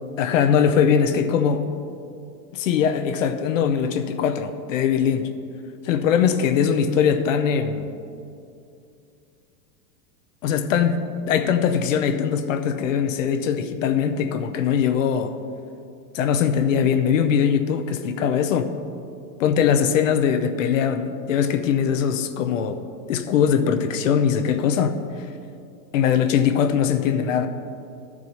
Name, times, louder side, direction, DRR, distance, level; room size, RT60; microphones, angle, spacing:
voice 1, 0.2-1.7 2.5-5.3 5.8-7.9 10.4-11.0 11.3-15.3 16.1-18.7 19.4-22.8 23.1-25.0 25.9-27.5, left 7 dB, 50° left, 8 dB, 0.7 m, -21 dB
13.0 x 4.8 x 5.4 m, 2.5 s
supercardioid pair, 165°, 50 cm